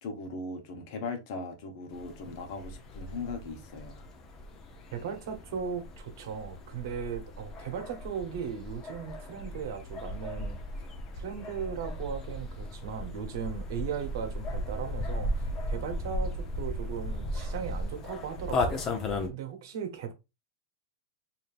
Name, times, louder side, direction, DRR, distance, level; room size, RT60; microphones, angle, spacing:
voice 1, 0.0-4.0, left 3 dB, 45° left, 1.0 m, -39 dB
sound 1, 1.9-19.3, left 1 dB, 25° left, 0.7 m, -36 dB
voice 2, 4.9-10.6 11.1-20.1, right 7 dB, 60° right, 1.0 m, -37 dB
5.0 x 2.7 x 2.5 m
supercardioid pair, 160°, 2 cm